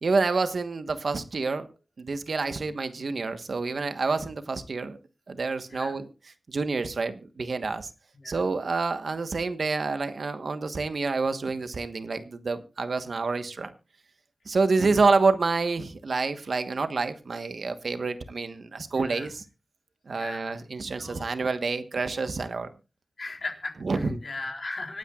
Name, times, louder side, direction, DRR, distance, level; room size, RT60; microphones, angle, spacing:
voice 1, 0.0-1.7 2.0-5.0 5.3-6.1 6.5-7.9 8.2-13.7 14.4-19.4 20.1-22.7 23.8-24.2, right 4 dB, 75° right, 9 dB, 1.2 m, -28 dB
voice 2, 18.9-19.3 20.1-20.6 21.0-21.3 23.2-25.0, left 3 dB, 65° left, 1 dB, 3.9 m, -38 dB
25.5 x 9.2 x 2.4 m, 0.31 s
wide cardioid pair, 75°, 0 cm